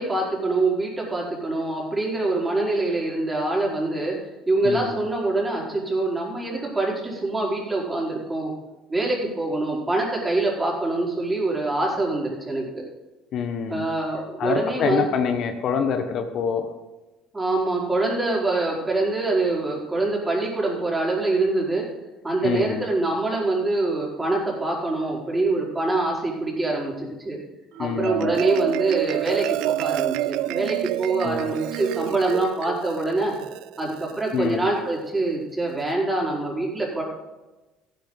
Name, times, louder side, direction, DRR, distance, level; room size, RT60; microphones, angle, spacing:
voice 1, 0.0-4.2 4.5-8.5 8.9-12.8 13.7-15.1 17.3-21.9 22.2-27.4 27.8-33.4 33.8-37.0, right 2 dB, 15° right, -3 dB, 4.8 m, -25 dB
voice 2, 4.6-5.0 13.3-13.9 14.4-16.7 22.4-22.9 27.8-28.4 31.2-31.5 34.3-34.6, left 6 dB, 55° left, 7 dB, 1.1 m, -26 dB
Marimba xylophone, 27.8-34.4, right 16 dB, 70° right, 0.3 m, -28 dB
15.0 x 10.5 x 4.0 m, 1.1 s
hypercardioid pair, 65°, 0 cm